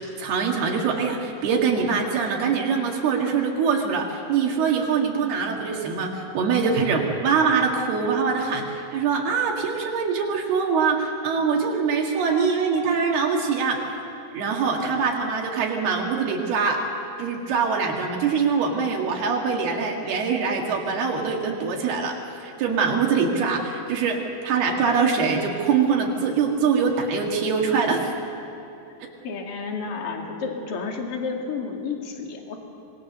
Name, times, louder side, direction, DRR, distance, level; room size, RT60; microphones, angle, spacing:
voice 1, 0.2-13.8 14.3-16.8 17.2-28.1, right 5 dB, 75° right, 1 dB, 3.9 m, -23 dB
voice 2, 29.2-32.6, left 5 dB, 40° left, 2 dB, 2.8 m, -31 dB
26.0 x 22.5 x 6.8 m, 3.0 s
omnidirectional pair, 4.6 m